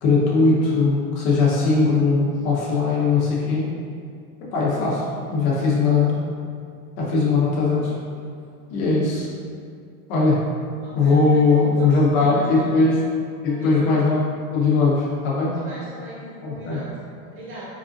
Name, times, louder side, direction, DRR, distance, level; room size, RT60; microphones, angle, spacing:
voice 1, 0.0-3.7 4.5-6.2 7.0-7.9 8.7-9.3 10.1-10.5 10.9-12.9 13.4-15.5 16.4-16.8, left 3 dB, 65° left, -5 dB, 1.1 m, -20 dB
voice 2, 10.8-12.7 13.4-14.0 15.5-17.7, right 1 dB, 30° right, -8 dB, 1.0 m, -38 dB
4.0 x 2.6 x 2.5 m, 2.2 s
supercardioid pair, 135°, 45 cm